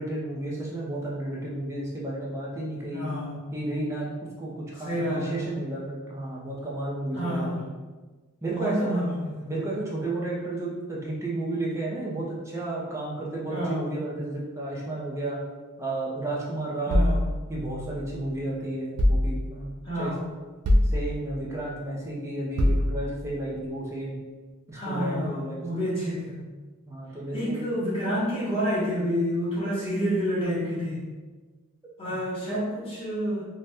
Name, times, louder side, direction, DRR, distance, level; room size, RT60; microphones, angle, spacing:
voice 1, 0.0-3.1 3.5-7.7 8.4-8.9 9.5-15.4 15.8-17.0 17.5-20.1 20.8-24.2 24.7-26.1 26.9-27.6 32.0-32.2, right 2 dB, 15° right, -5 dB, 0.5 m, -32 dB
voice 2, 2.9-3.4 4.8-5.4 7.1-7.6 8.5-9.6 13.5-13.8 16.9-17.2 19.8-20.2 24.7-26.4 27.3-31.0 32.0-33.4, equal, 25° left, -8 dB, 0.8 m, -28 dB
sound 1, 16.9-18.3 19.0-19.8 20.6-21.5 22.6-23.4, left 1 dB, 90° right, 0.4 m, -25 dB
2.6 x 2.2 x 3.4 m, 1.3 s
head